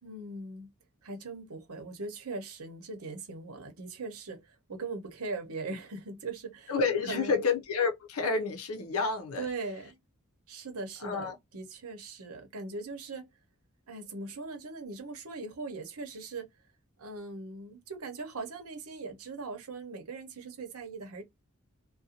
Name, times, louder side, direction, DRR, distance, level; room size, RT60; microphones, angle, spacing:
voice 1, 0.0-0.7 1.0-6.7 7.1-7.5 9.4-10.0 10.5-13.3 13.9-16.5 17.0-21.2, right 3 dB, 75° right, 0.9 m, -40 dB
voice 2, 6.7-9.5 11.0-11.3, left 4 dB, 75° left, 0.7 m, -29 dB
2.5 x 2.2 x 2.7 m
head